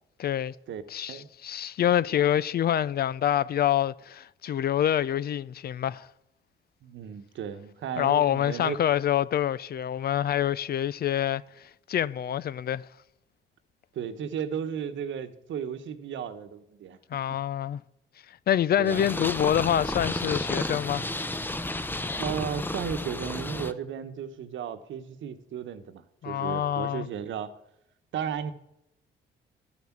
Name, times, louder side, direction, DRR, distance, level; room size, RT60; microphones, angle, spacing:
voice 1, 0.2-0.5 0.9-6.1 8.0-12.8 17.1-17.8 18.5-21.0 26.2-27.1, left 10 dB, 50° left, 0.5 m, -26 dB
voice 2, 6.8-8.8 13.9-17.0 18.8-19.0 22.2-27.5 28.1-28.5, right 8 dB, 70° right, 1.2 m, -34 dB
Purr, 18.9-23.7, left 2 dB, 10° left, 0.7 m, -32 dB
13.0 x 6.0 x 7.4 m
cardioid pair, 90°, 20 cm